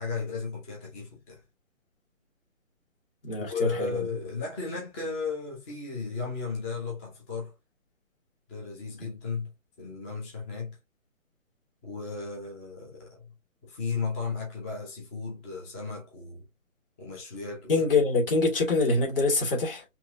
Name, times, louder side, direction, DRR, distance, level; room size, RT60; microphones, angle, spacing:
voice 1, 0.0-1.4 3.4-7.5 8.5-9.5 9.8-10.7 11.8-13.3 13.6-16.4 17.0-17.7, left 4 dB, 10° left, 0.9 m, -35 dB
voice 2, 3.2-4.1 17.7-19.8, left 3 dB, 40° left, 2.7 m, -25 dB
5.5 x 2.9 x 2.7 m
figure-of-eight pair, 145°, 41 cm